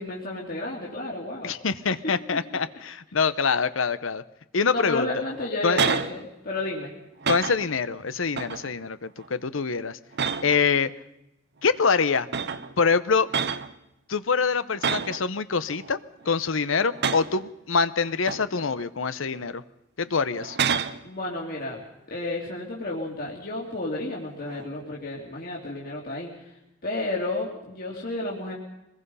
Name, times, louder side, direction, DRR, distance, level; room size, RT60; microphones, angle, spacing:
voice 1, 0.0-1.5 4.7-6.9 21.0-26.3 26.8-28.5, left 2 dB, 50° left, -3 dB, 3.3 m, -31 dB
voice 2, 1.4-4.2 4.5-5.1 5.6-5.8 7.3-10.0 10.4-10.9 11.6-12.3 12.8-13.3 14.1-16.0 16.3-19.6 20.0-20.6, left 5 dB, 75° left, 14 dB, 0.8 m, -25 dB
sound 1, 5.3-6.2 6.6-6.8 7.2-7.8 8.3-8.8 9.2-9.5 10.1-10.7 11.7-11.8 12.3-12.7 13.3-13.7 14.8-15.2 15.7-16.3 16.9-17.4 18.0-18.9 19.3-19.5 20.3-21.0 24.5-24.8, right 6 dB, 55° right, 0.9 m, -29 dB
24.5 x 21.0 x 5.6 m, 0.87 s
head